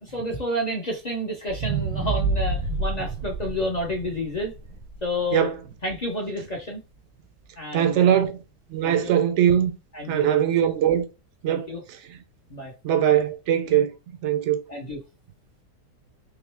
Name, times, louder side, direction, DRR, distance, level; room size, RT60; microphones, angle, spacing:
voice 1, 0.0-4.5 5.0-5.5 5.8-6.8 7.6-8.2 8.8-9.2 9.9-10.4 11.5-11.8 12.5-12.7 14.7-15.0, left 1 dB, 55° left, 0.4 m, -30 dB
sound 1, 1.5-5.7 6.2-6.3, right 4 dB, 85° right, 1.3 m, -29 dB
voice 2, 7.7-8.4 8.7-9.7 10.1-11.0 11.4-11.7 12.8-13.9 14.2-14.6, right 10 dB, 70° right, 0.6 m, -21 dB
3.7 x 3.0 x 3.3 m
omnidirectional pair, 1.8 m